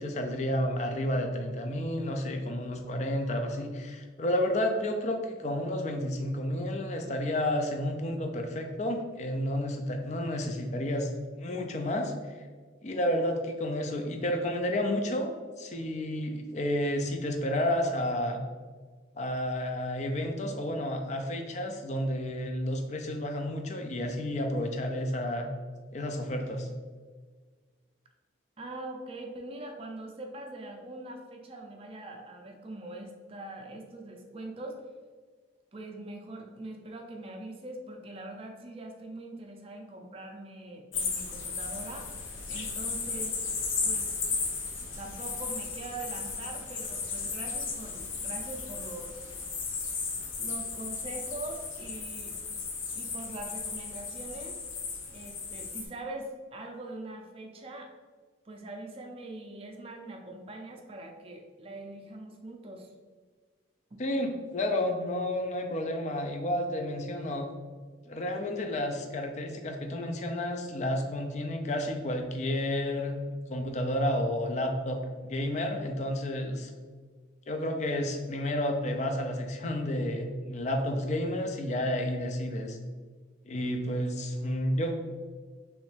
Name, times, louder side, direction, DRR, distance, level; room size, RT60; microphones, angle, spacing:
voice 1, 0.0-12.4 12.8-15.3 15.6-18.4 19.2-25.5 25.9-26.7 64.0-67.5 68.1-73.2 73.5-76.7 77.5-82.8 83.4-84.9, left 1 dB, 35° left, 4 dB, 0.4 m, -31 dB
voice 2, 28.6-34.8 35.7-42.1 42.5-43.4 43.8-44.1 44.8-49.2 49.9-50.0 50.4-52.3 53.0-54.6 55.1-57.9 58.5-62.9 63.9-64.0, right 2 dB, 30° right, 2 dB, 0.4 m, -42 dB
sound 1, 40.9-55.9, left 4 dB, 90° left, 0.7 m, -35 dB
3.3 x 3.1 x 3.2 m, 1.5 s
head